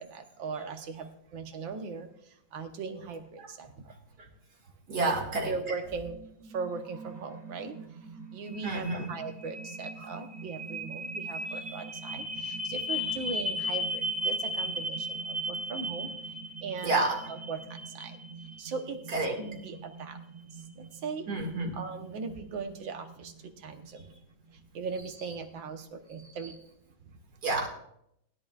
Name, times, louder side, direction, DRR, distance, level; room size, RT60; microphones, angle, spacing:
voice 1, 0.0-3.9 5.0-5.1 5.4-6.2 6.4-7.8 8.3-18.2 18.6-20.2 20.6-21.3 21.7-24.1 24.7-26.6, right 4 dB, 80° right, 6 dB, 1.8 m, -39 dB
voice 2, 4.9-5.5 8.6-9.1 10.0-10.1 16.8-17.2 19.1-19.4 21.3-21.7 27.4-27.7, right 2 dB, 55° right, 0 dB, 2.7 m, -29 dB
sound 1, 6.1-24.1, equal, 35° right, 0.7 m, -38 dB
20.0 x 11.0 x 2.4 m, 0.75 s
omnidirectional pair, 2.1 m